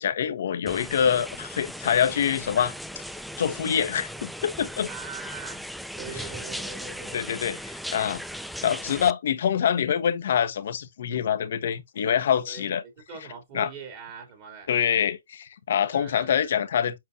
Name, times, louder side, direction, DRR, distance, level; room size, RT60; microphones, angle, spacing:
voice 1, 0.0-2.7 3.4-4.9 7.1-8.2 8.6-12.8 13.5-13.7 14.7-17.0, left 8 dB, 55° left, 1.2 m, -25 dB
sound 1, 0.7-9.1, equal, ahead, 0.3 m, -38 dB
voice 2, 4.9-5.6 6.0-7.2 12.5-14.7 15.9-16.5, right 6 dB, 35° right, 3.0 m, -42 dB
7.9 x 4.5 x 2.7 m
hypercardioid pair, 145°, 0 cm